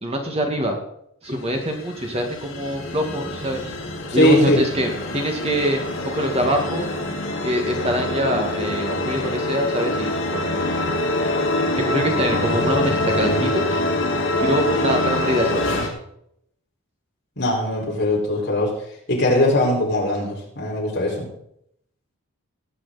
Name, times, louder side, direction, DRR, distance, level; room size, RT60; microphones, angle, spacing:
voice 1, 0.0-0.8 1.2-3.7 4.1-6.9 7.4-10.8 11.8-13.8 14.4-15.9, equal, 25° right, 3 dB, 1.8 m, -24 dB
sound 1, 1.3-15.9, left 1 dB, 65° left, 3.4 m, -25 dB
voice 2, 4.1-4.6 17.4-18.7 19.1-21.3, left 1 dB, 50° left, -3 dB, 5.0 m, -20 dB
19.0 x 9.0 x 4.1 m, 0.72 s
head